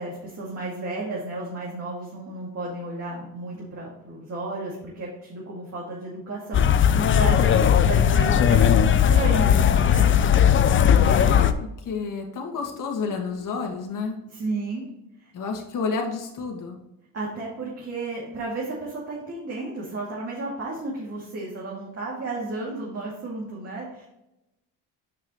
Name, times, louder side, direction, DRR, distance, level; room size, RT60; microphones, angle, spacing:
voice 1, 0.0-10.4 10.8-11.3 14.3-14.8 15.2-15.3 17.1-24.1, right 2 dB, 40° right, -4 dB, 2.4 m, -33 dB
sound 1, 6.5-11.5, left 9 dB, 30° left, 0.5 m, -18 dB
voice 2, 11.8-14.2 15.3-16.8, left 4 dB, 55° left, 2 dB, 1.9 m, -30 dB
8.2 x 5.8 x 3.0 m, 0.90 s
cardioid pair, 110°, 39 cm